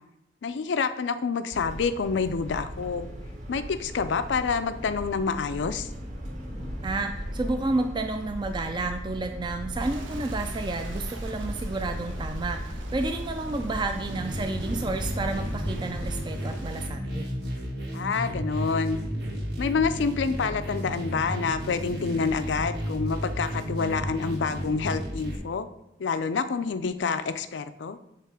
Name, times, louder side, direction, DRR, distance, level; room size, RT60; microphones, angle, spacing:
voice 1, 0.4-3.1 3.5-5.9 17.9-19.0 19.6-25.7 26.0-28.0, left 5 dB, 75° left, 11 dB, 0.4 m, -27 dB
sound 1, 1.5-16.1, equal, 40° right, 1.2 m, -36 dB
voice 2, 6.8-12.6 12.9-17.3, right 2 dB, 25° right, 6 dB, 0.3 m, -31 dB
Stream, 9.8-16.9, right 3 dB, 90° right, 0.8 m, -48 dB
sound 2, 14.1-25.4, equal, 60° right, 1.5 m, -33 dB
5.7 x 3.7 x 4.8 m, 0.84 s
head